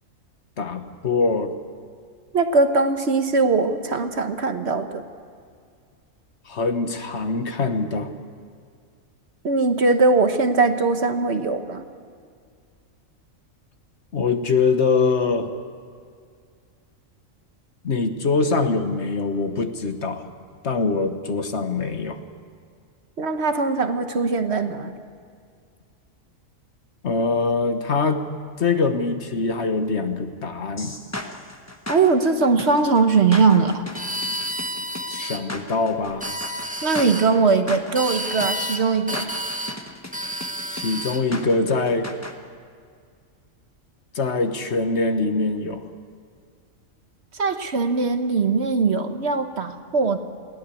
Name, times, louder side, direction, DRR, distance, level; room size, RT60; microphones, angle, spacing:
voice 1, 0.6-1.5 6.5-8.1 14.1-15.5 17.8-20.2 20.6-22.2 27.0-28.2 28.6-31.0 35.1-36.3 40.7-42.1 44.1-45.8, left 4 dB, 60° left, 8 dB, 1.4 m, -23 dB
voice 2, 2.3-5.0 9.4-11.8 23.2-24.9 31.9-33.8 36.8-39.3 47.4-50.2, right 4 dB, 55° right, 8 dB, 1.4 m, -20 dB
sound 1, 30.8-42.3, left 1 dB, 15° left, 1.2 m, -36 dB
sound 2, 33.9-35.4 36.1-37.3 38.0-38.8 39.1-39.8 40.1-41.2, equal, 5° right, 0.9 m, -30 dB
22.0 x 17.0 x 8.4 m, 2.2 s
omnidirectional pair, 1.4 m